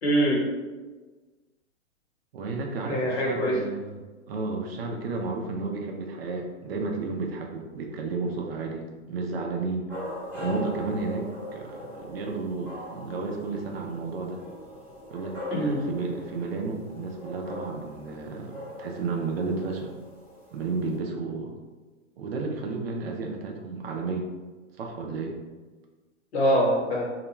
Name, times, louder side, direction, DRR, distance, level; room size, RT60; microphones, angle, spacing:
voice 1, 0.0-0.4 2.9-3.6 15.5-15.8 26.3-27.1, equal, 55° left, -4 dB, 1.1 m, -23 dB
voice 2, 2.3-4.0 4.3-8.8 9.1-9.9 10.3-11.3 11.5-14.4 15.1-19.9 20.5-21.5 22.2-24.3 24.8-25.3, right 3 dB, 50° right, 1 dB, 0.5 m, -32 dB
sound 1, 9.9-21.0, left 1 dB, 5° left, 0.8 m, -40 dB
2.3 x 2.2 x 3.0 m, 1.3 s
hypercardioid pair, 140°, 39 cm